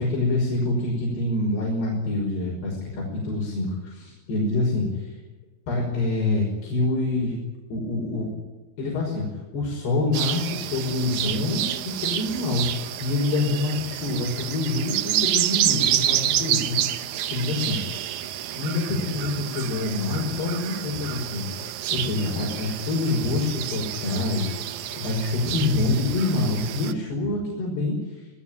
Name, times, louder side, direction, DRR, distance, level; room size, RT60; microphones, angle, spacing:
voice 1, 0.0-5.2 5.7-7.3 7.7-8.4 8.8-9.3 9.5-18.0 18.5-21.5 21.9-28.3, left 2 dB, 85° left, -2 dB, 7.7 m, -26 dB
sound 1, 10.1-26.9, right 12 dB, 70° right, 1.9 m, -29 dB
27.0 x 18.0 x 9.0 m, 1.2 s
omnidirectional pair, 4.6 m